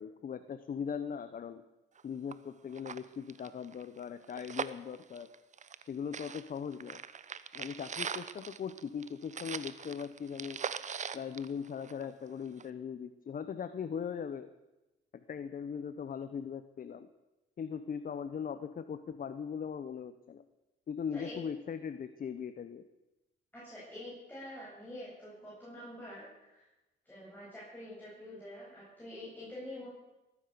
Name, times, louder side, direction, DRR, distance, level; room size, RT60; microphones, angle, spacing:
voice 1, 0.0-1.6 2.0-5.3 5.8-7.0 7.5-10.6 11.1-14.5 15.3-17.1 17.6-20.4 20.9-22.8, left 7 dB, 45° left, 11 dB, 0.9 m, -39 dB
sound 1, 2.0-2.1 2.3-2.4 2.7-5.9 6.1-12.2 12.6-12.7, right 6 dB, 40° right, 0.8 m, -41 dB
voice 2, 23.5-26.7 27.0-29.9, left 1 dB, 10° left, -7 dB, 8.0 m, -46 dB
20.0 x 9.7 x 6.9 m, 1.0 s
cardioid pair, 90°, 20 cm